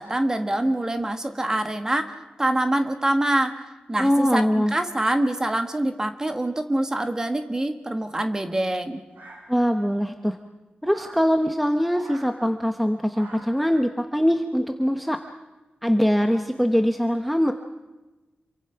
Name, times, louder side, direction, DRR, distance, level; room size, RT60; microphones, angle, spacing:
voice 1, 0.0-3.6 3.9-9.0, right 1 dB, 20° right, 7 dB, 1.6 m, -25 dB
voice 2, 4.0-4.7 9.5-10.4 10.8-15.2 15.8-17.5, equal, ahead, 6 dB, 1.0 m, -22 dB
sound 1, 9.1-9.9 10.8-11.2 11.9-12.3 13.1-13.6, right 2 dB, 80° right, 5.4 m, -44 dB
27.5 x 23.5 x 5.8 m, 1.1 s
wide cardioid pair, 175°, 3 cm